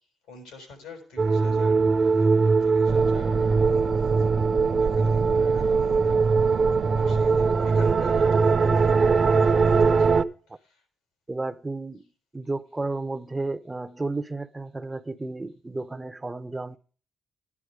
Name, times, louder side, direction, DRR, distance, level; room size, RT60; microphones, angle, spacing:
voice 1, 0.3-10.2 10.5-10.8, left 3 dB, 90° left, 5.4 m, -47 dB
sound 1, 1.2-10.2, right 4 dB, 45° right, 1.1 m, -21 dB
sound 2, 2.9-10.2, right 8 dB, 70° right, 0.5 m, -31 dB
voice 2, 11.3-16.8, right 2 dB, 20° right, 0.9 m, -32 dB
13.0 x 9.8 x 5.0 m
supercardioid pair, 50°, 0 cm